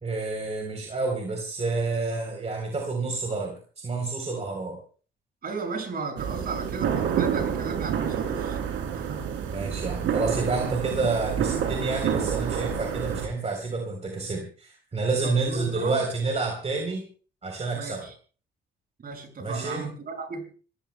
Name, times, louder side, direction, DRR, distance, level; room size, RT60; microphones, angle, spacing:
voice 1, 0.0-3.5 3.8-4.8 9.5-17.0 17.4-18.1 19.4-19.8, right 3 dB, 35° right, 2 dB, 3.7 m, -29 dB
voice 2, 5.4-8.6 8.9-9.2 15.2-16.0 17.7-18.1 19.0-20.5, right 4 dB, 50° right, 4 dB, 6.5 m, -35 dB
sound 1, 6.2-13.3, right 8 dB, 85° right, 3.2 m, -28 dB
27.0 x 16.0 x 2.2 m, 0.39 s
cardioid pair, 90°, 20 cm